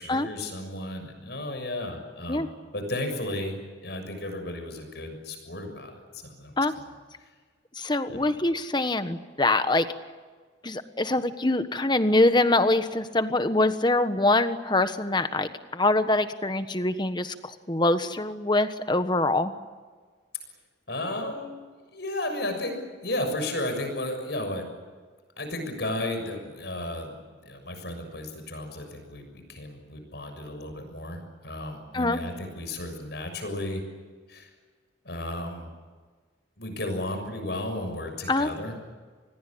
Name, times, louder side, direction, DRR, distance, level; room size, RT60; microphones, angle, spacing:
voice 1, 0.0-2.5 2.7-3.5 3.8-6.8 8.1-8.3 20.9-21.5 21.9-22.8 23.0-24.7 25.4-27.2 27.4-33.8 34.3-34.5 35.0-35.7 36.6-38.7, left 1 dB, 60° left, 6 dB, 6.7 m, -34 dB
voice 2, 7.7-9.9 10.6-19.5 31.9-32.2 38.3-38.5, left 2 dB, 25° left, 10 dB, 1.3 m, -24 dB
27.5 x 21.0 x 8.8 m, 1.5 s
head